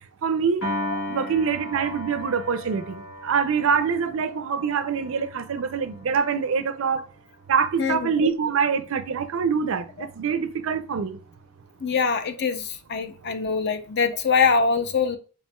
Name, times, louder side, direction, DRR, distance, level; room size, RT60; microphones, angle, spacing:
voice 1, 0.2-0.6 1.1-7.1 7.5-11.2, right 6 dB, 60° right, 0.4 m, -25 dB
Piano, 0.6-7.0, left 1 dB, 65° left, 2.1 m, -36 dB
voice 2, 7.8-8.1 11.8-15.2, left 5 dB, 50° left, 0.5 m, -23 dB
4.2 x 3.5 x 2.2 m
head